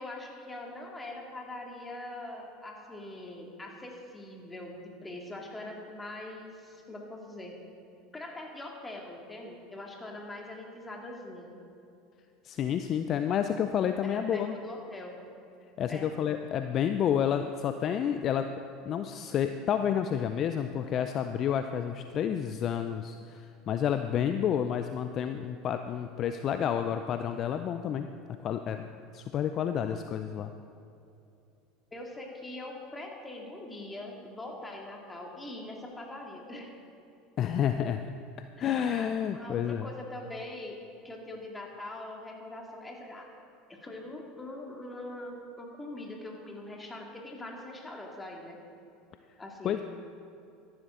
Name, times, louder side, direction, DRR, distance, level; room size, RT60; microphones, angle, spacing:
voice 1, 0.0-7.6 8.1-11.5 14.0-15.1 15.9-16.1 31.9-36.7 38.6-39.1 39.3-40.8 41.0-43.3 43.7-48.6 49.4-49.8, left 1 dB, 15° left, 0 dB, 2.4 m, -42 dB
voice 2, 12.4-14.6 15.8-18.5 18.9-28.1 28.4-28.9 29.1-30.5 37.4-38.0 38.6-39.9 49.6-49.8, left 9 dB, 45° left, 8 dB, 0.5 m, -30 dB
14.0 x 11.5 x 3.8 m, 2.7 s
hypercardioid pair, 75°, 0 cm